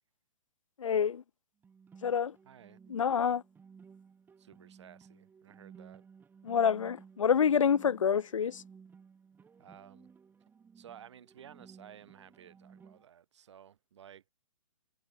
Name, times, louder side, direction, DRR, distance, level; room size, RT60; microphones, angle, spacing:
voice 1, 0.8-1.2 2.0-2.4 2.9-3.4 6.4-8.6, left 7 dB, 65° left, 0.9 m, -27 dB
sound 1, 1.6-13.0, right 6 dB, 10° right, 6.4 m, -57 dB
voice 2, 2.5-2.8 4.4-6.1 9.6-10.1 10.7-14.3, right 9 dB, 55° right, 4.2 m, -54 dB
figure-of-eight pair, 120°, 18 cm